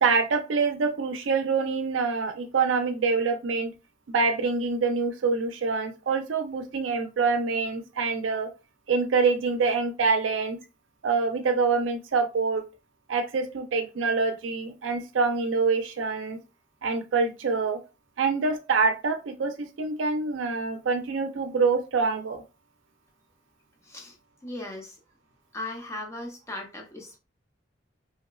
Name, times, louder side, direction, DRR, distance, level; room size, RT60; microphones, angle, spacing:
voice 1, 0.0-3.7 4.1-8.5 8.9-10.6 11.0-12.6 13.1-16.4 16.8-17.8 18.2-22.4, right 4 dB, 90° right, 0.5 m, -25 dB
voice 2, 23.8-24.2 24.4-25.0 25.5-27.2, left 2 dB, 15° left, 0.5 m, -37 dB
2.9 x 2.1 x 2.3 m
head